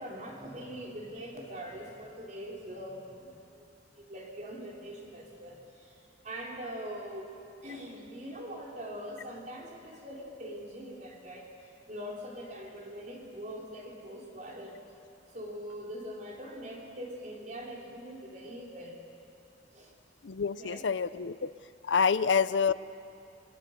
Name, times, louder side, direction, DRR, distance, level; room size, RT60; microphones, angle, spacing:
voice 1, 0.0-3.7 3.9-7.3 7.6-11.5 11.9-14.8 15.3-19.0 19.7-19.9 20.6-20.9, equal, 45° right, -2 dB, 4.2 m, -42 dB
voice 2, 20.2-21.5 21.8-22.7, left 6 dB, 85° left, 15 dB, 0.6 m, -27 dB
29.0 x 22.0 x 6.8 m, 2.5 s
head